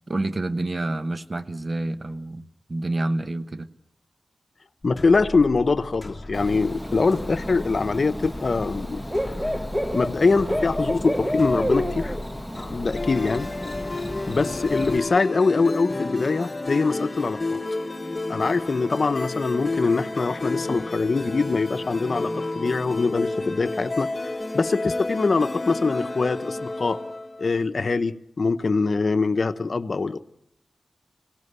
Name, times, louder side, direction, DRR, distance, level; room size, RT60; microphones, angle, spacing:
voice 1, 0.1-2.4 2.7-3.7, right 2 dB, 40° right, 11 dB, 1.0 m, -28 dB
voice 2, 4.8-9.0 9.9-12.2 12.7-13.5 14.3-17.6 18.3-24.1 24.5-27.0 27.4-30.2, left 4 dB, 55° left, 11 dB, 0.9 m, -23 dB
sound 1, 4.8-14.3, left 2 dB, 15° left, 2.1 m, -39 dB
Bird / Cricket, 6.3-15.0, equal, 5° right, 1.2 m, -30 dB
sound 2, 12.9-27.5, left 2 dB, 35° left, 1.3 m, -31 dB
25.5 x 18.0 x 8.1 m, 0.78 s
wide cardioid pair, 90°, 0 cm